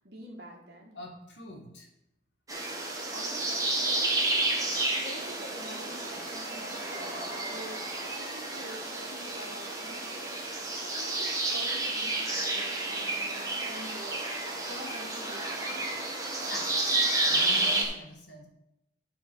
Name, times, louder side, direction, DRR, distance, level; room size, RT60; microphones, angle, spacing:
voice 1, 0.0-0.9 3.1-4.1 4.6-7.8 8.2-10.3 10.8-14.2 14.7-16.0, right 1 dB, 65° right, -1 dB, 1.7 m, -47 dB
voice 2, 0.9-1.9 16.4-18.5, left 1 dB, 75° left, 1 dB, 2.0 m, -45 dB
sound 1, 2.5-17.8, right 2 dB, 20° right, 1.5 m, -31 dB
11.0 x 4.2 x 6.2 m, 0.85 s
head